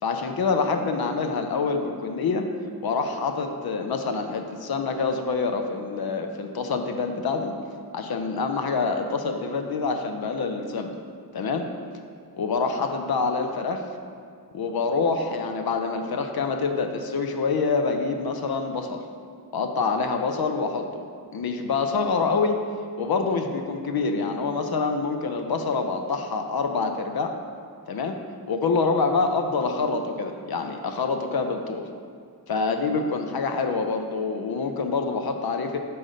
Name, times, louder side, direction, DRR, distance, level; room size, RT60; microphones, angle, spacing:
voice 1, 0.0-2.5 2.8-7.5 7.9-11.0 11.3-11.7 12.4-13.9 14.5-19.0 19.5-21.0 21.3-22.6 23.0-27.4 27.9-28.2 28.5-31.9 32.5-35.8, left 4 dB, 70° left, 5 dB, 0.5 m, -26 dB
5.8 x 3.9 x 5.0 m, 2.2 s
wide cardioid pair, 95°, 38 cm